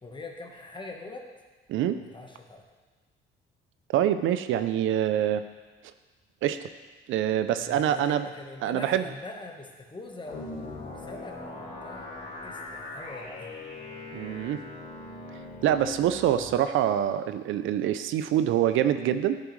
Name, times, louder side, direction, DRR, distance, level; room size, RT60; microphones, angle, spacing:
voice 1, 0.0-1.3 2.0-2.6 7.7-12.1 12.4-13.5, left 2 dB, 25° left, 2 dB, 1.3 m, -43 dB
voice 2, 1.7-2.0 3.9-5.4 6.4-6.6 7.1-8.3 8.6-9.1 14.1-14.6 15.6-19.4, right 11 dB, 80° right, 11 dB, 0.5 m, -25 dB
sound 1, 10.2-16.5, left 2 dB, 75° left, 3.0 m, -41 dB
10.5 x 7.5 x 3.2 m, 1.3 s
cardioid pair, 90°, 20 cm